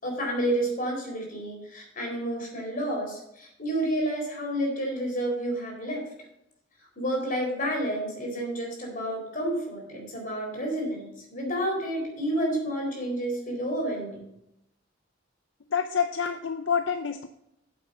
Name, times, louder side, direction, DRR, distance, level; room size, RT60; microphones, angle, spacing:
voice 1, 0.0-6.0 7.0-14.2, right 1 dB, 45° left, 0 dB, 4.3 m, -30 dB
voice 2, 15.7-17.3, left 7 dB, 75° left, 8 dB, 0.6 m, -27 dB
8.7 x 7.6 x 5.6 m, 0.81 s
head